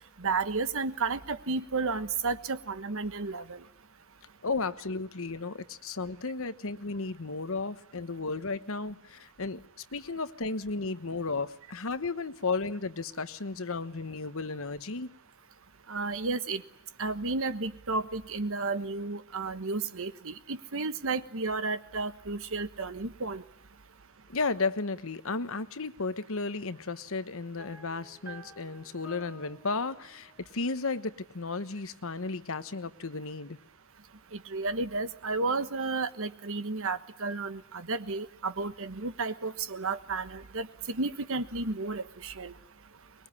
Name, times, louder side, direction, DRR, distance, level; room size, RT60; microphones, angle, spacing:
voice 1, 0.2-3.6 15.9-16.6 17.0-23.4 34.3-42.5, right 3 dB, 65° right, 12 dB, 1.3 m, -32 dB
voice 2, 4.4-15.1 24.3-33.6, left 3 dB, 65° left, 12 dB, 1.2 m, -34 dB
sound 1, 27.6-31.4, right 2 dB, 10° right, 3.4 m, -52 dB
24.0 x 22.0 x 9.8 m, 0.74 s
head